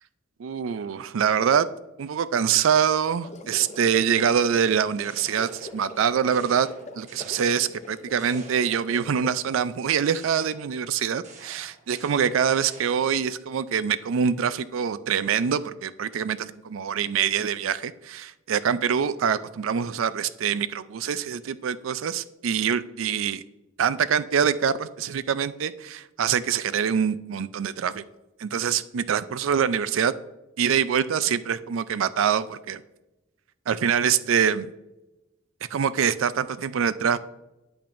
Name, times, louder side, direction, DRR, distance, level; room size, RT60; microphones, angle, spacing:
voice 1, 0.4-1.7 2.0-6.7 7.0-23.4 23.8-28.0 28.4-30.1 30.6-32.8 33.7-34.7 35.7-37.2, right 7 dB, 85° right, 15 dB, 0.4 m, -24 dB
sound 1, 3.0-9.8, left 1 dB, 35° left, 0.6 m, -43 dB
sound 2, 5.0-6.0 6.3-7.9 8.2-9.2 10.0-13.2, right 3 dB, 35° right, 1.3 m, -49 dB
8.7 x 8.6 x 2.6 m, 0.99 s
head